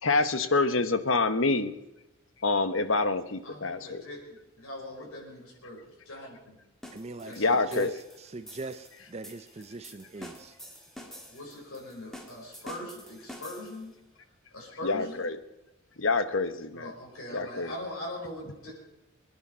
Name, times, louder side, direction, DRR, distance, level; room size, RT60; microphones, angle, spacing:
voice 1, 0.0-1.7 2.4-4.0 7.4-7.9 14.8-15.4 16.0-16.9 17.3-17.7, left 3 dB, 70° left, 11 dB, 1.1 m, -26 dB
voice 2, 3.4-6.6 7.2-7.5 11.1-13.9 14.5-15.3 16.7-18.7, left 1 dB, 90° left, -2 dB, 5.1 m, -41 dB
sound 1, 6.8-13.9, equal, ahead, 1.7 m, -48 dB
voice 3, 6.9-10.5, right 3 dB, 30° right, 10 dB, 0.6 m, -41 dB
23.0 x 10.5 x 5.6 m, 0.93 s
head